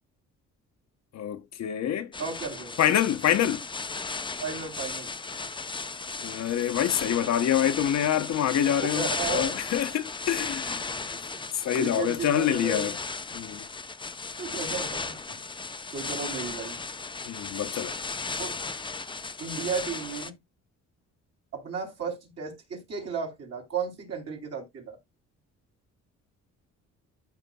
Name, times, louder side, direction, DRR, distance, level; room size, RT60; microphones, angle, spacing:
voice 1, 1.1-2.1 2.8-3.6 6.2-11.2 11.6-12.9 13.3-13.6 17.3-17.9, left 10 dB, 60° left, 0.8 m, -26 dB
sound 1, 2.1-20.3, left 4 dB, 15° left, 0.6 m, -35 dB
voice 2, 2.2-2.8 4.4-5.1 8.8-9.6 11.2-11.4 11.8-12.9 14.4-15.4 15.9-16.8 18.4-18.6 19.4-20.3 21.5-25.0, right 5 dB, 55° right, 3.2 m, -34 dB
13.0 x 5.1 x 2.2 m
cardioid pair, 90°, 30 cm